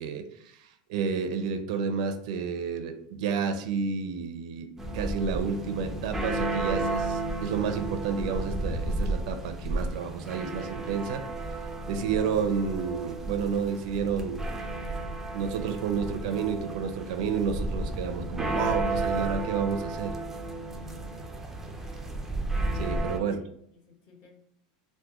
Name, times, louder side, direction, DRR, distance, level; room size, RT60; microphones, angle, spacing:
voice 1, 0.0-4.7 4.9-11.2 11.9-14.4 15.3-20.1 22.7-23.4, right 6 dB, 70° right, 8 dB, 0.4 m, -30 dB
sound 1, 4.8-23.2, right 2 dB, 5° right, 0.4 m, -32 dB
voice 2, 20.9-21.3 21.6-22.0 23.1-23.4 23.7-24.4, left 4 dB, 45° left, -2 dB, 1.1 m, -56 dB
3.6 x 2.2 x 2.8 m, 0.70 s
supercardioid pair, 150°, 4 cm